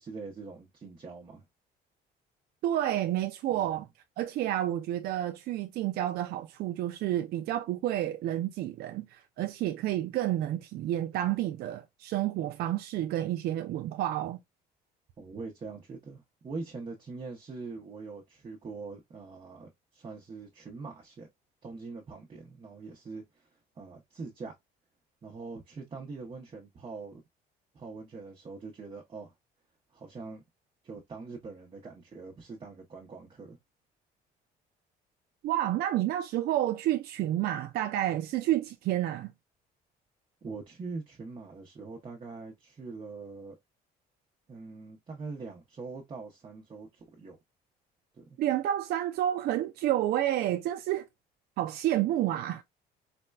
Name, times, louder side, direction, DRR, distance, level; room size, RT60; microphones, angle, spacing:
voice 1, 0.0-1.5 3.5-3.8 15.2-21.3 21.6-24.5 25.2-27.2 27.7-29.3 29.9-30.4 30.8-33.6 40.4-43.6 44.5-47.4 48.1-48.4, right 4 dB, 30° right, 0.8 m, -43 dB
voice 2, 2.6-3.9 4.2-14.4 35.4-39.3 48.4-51.1 51.6-52.6, right 13 dB, 65° right, 0.4 m, -30 dB
4.2 x 2.1 x 2.2 m
cardioid pair, 110°, 17 cm